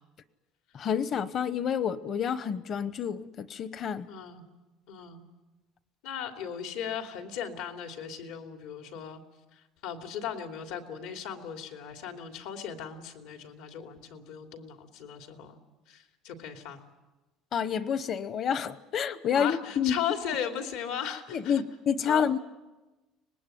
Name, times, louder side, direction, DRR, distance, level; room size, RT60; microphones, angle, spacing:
voice 1, 0.7-4.1 17.5-20.0 21.3-22.4, left 7 dB, 35° left, 15 dB, 0.9 m, -29 dB
voice 2, 4.1-4.4 4.9-5.2 6.0-9.2 9.5-15.6 15.9-16.8 19.3-21.6 22.0-22.3, left 8 dB, 75° left, 5 dB, 3.0 m, -37 dB
25.0 x 20.0 x 9.3 m, 1.2 s
cardioid pair, 165°, 0 cm